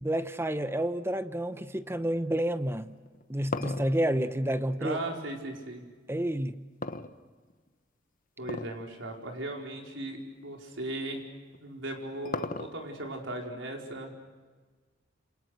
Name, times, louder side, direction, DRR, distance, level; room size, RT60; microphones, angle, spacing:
voice 1, 0.0-3.0 3.3-5.0 6.1-6.7, right 1 dB, 15° right, 1.0 m, -29 dB
sound 1, 3.0-5.4 6.8-7.7 8.4-8.8 9.2-9.3 10.0-10.2 11.5-13.0, left 3 dB, 45° left, 1.2 m, -37 dB
voice 2, 4.8-5.8 8.4-11.2 11.6-14.1, right 1 dB, 80° right, 4.7 m, -37 dB
28.5 x 27.0 x 6.6 m
head